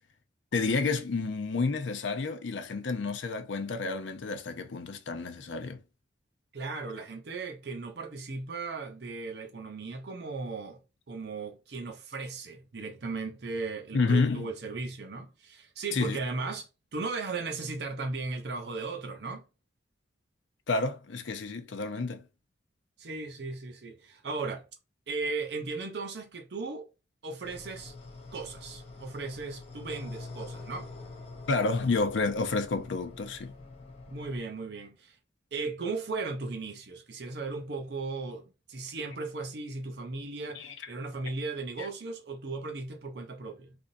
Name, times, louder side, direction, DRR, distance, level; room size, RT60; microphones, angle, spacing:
voice 1, 0.5-5.8 13.9-14.5 15.9-16.2 20.7-22.2 31.5-33.5 40.5-40.7 41.8-41.9, left 3 dB, 80° left, 0.5 m, -30 dB
voice 2, 6.5-10.8 11.1-19.4 23.0-24.7 25.1-26.9 27.2-27.9 28.3-30.9 34.1-35.2 35.5-43.8, right 3 dB, 60° right, 0.6 m, -36 dB
sound 1, 27.4-34.4, left 3 dB, 35° left, 0.7 m, -46 dB
3.4 x 2.6 x 2.6 m
head